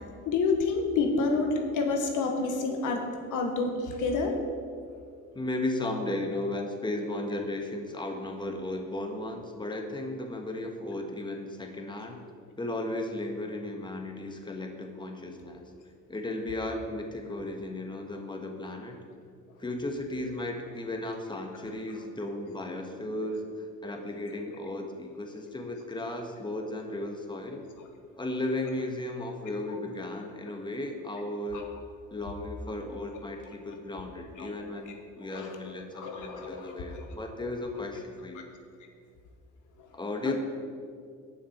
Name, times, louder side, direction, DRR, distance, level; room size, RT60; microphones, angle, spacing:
voice 1, 0.2-4.4 27.8-27.9 31.5-31.7 34.4-34.5 35.3-35.6 35.9-37.0 40.3-40.4, left 3 dB, 85° left, 3 dB, 1.4 m, -29 dB
voice 2, 5.3-12.2 12.6-15.7 16.1-19.0 19.6-27.6 28.2-31.7 32.1-38.5 39.9-40.3, left 1 dB, 15° left, 3 dB, 1.5 m, -35 dB
18.0 x 6.1 x 4.4 m, 2.2 s
cardioid pair, 90°, 30 cm